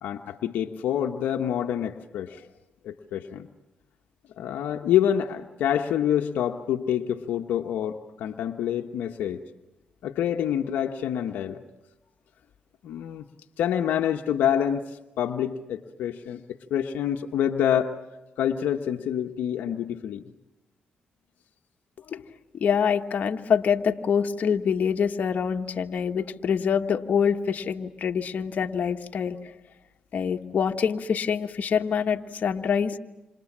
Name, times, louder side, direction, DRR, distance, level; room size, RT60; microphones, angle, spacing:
voice 1, 0.0-2.5 2.8-3.5 4.4-9.4 10.0-11.6 12.8-13.3 13.6-16.4 16.7-18.0 18.4-20.2, left 10 dB, 85° left, 4 dB, 1.2 m, -27 dB
voice 2, 22.6-29.4 30.1-33.0, left 7 dB, 60° left, 5 dB, 1.5 m, -25 dB
28.0 x 27.5 x 7.4 m, 1.0 s
cardioid pair, 65°, 3 cm